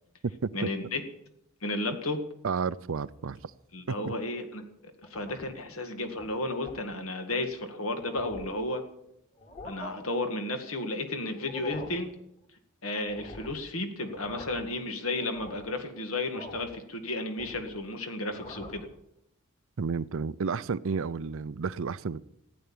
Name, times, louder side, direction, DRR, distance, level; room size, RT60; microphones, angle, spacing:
voice 1, 0.5-1.0 1.6-2.2 3.7-4.6 5.1-8.8 9.6-12.2 12.8-18.9, left 2 dB, 75° left, 2.0 m, -33 dB
voice 2, 2.4-3.4 3.9-4.1 19.8-22.2, right 5 dB, 65° right, 0.5 m, -31 dB
sound 1, 5.0-5.6 6.0-6.3 6.7-6.9 7.5-7.6 7.9-8.6 9.4-9.9 11.3-12.0 13.1-13.6 14.0-14.7 15.1-15.7 16.3-16.8 17.1-17.8 18.2-18.9, left 1 dB, 40° left, 3.0 m, -44 dB
14.5 x 9.3 x 8.6 m
head